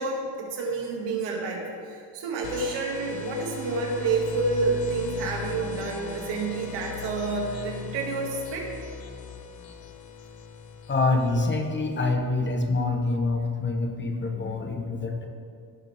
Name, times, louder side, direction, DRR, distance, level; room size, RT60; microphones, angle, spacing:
voice 1, 0.0-8.7, right 4 dB, 85° right, -1 dB, 2.3 m, -29 dB
sound 1, 2.4-12.1, left 7 dB, 55° left, 1.0 m, -38 dB
voice 2, 10.9-15.3, left 3 dB, 25° left, 4 dB, 1.1 m, -26 dB
16.5 x 6.6 x 3.5 m, 2.2 s
cardioid pair, 125°, 41 cm